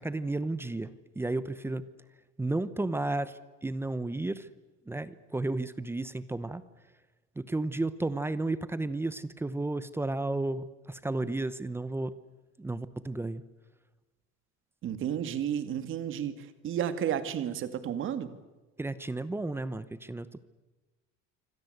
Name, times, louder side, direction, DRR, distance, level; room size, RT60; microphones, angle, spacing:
voice 1, 0.0-1.8 2.4-4.5 4.9-6.6 7.4-12.1 12.6-13.4 18.8-20.4, right 2 dB, 10° right, 15 dB, 0.9 m, -33 dB
voice 2, 14.8-18.3, right 9 dB, 40° right, 11 dB, 2.3 m, -32 dB
27.0 x 24.5 x 8.0 m, 1.2 s
cardioid pair, 170°, 30 cm